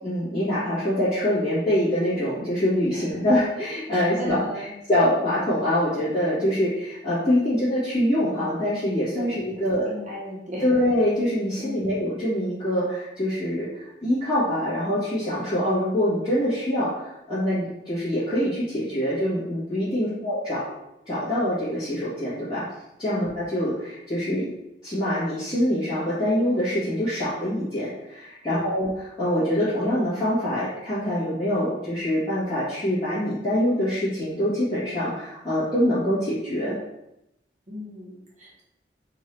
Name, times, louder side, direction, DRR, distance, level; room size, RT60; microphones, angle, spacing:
voice 1, 0.0-9.9 10.6-20.6 21.0-22.6 23.0-24.4 24.8-36.8, left 1 dB, 25° left, -15 dB, 1.5 m, -25 dB
voice 2, 3.9-4.7 9.1-10.6 11.6-11.8 20.0-20.3 23.1-23.3 28.5-28.7 37.7-38.6, equal, 45° right, -5 dB, 1.2 m, -36 dB
3.7 x 2.7 x 3.3 m, 0.87 s
head